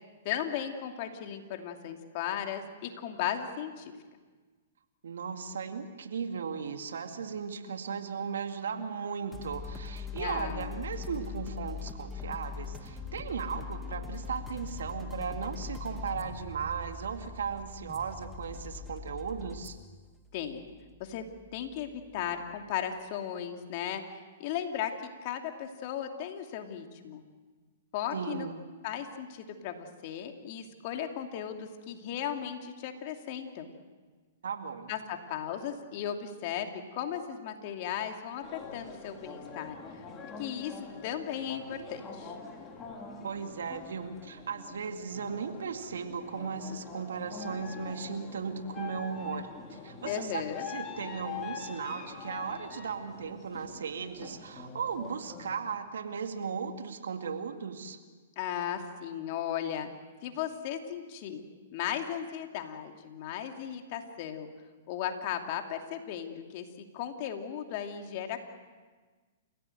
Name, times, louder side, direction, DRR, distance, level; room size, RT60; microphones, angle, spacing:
voice 1, 0.2-3.9 10.2-10.7 20.3-20.7 21.0-21.2 21.5-24.0 24.4-24.9 25.2-27.2 27.9-28.5 28.8-33.7 34.9-39.8 40.4-40.7 41.0-42.3 50.0-50.6 58.4-59.9 60.2-61.4 61.7-64.5 64.9-66.7 66.9-68.5, left 9 dB, 50° left, 5 dB, 2.7 m, -36 dB
voice 2, 5.0-19.8 28.1-28.6 34.4-34.9 43.2-58.0, right 6 dB, 75° right, 6 dB, 2.2 m, -36 dB
sound 1, 9.3-22.7, left 5 dB, ahead, 2.3 m, -42 dB
sound 2, 38.4-55.6, left 5 dB, 20° left, 3.7 m, -45 dB
29.5 x 16.5 x 7.9 m, 1.4 s
hypercardioid pair, 125°, 0 cm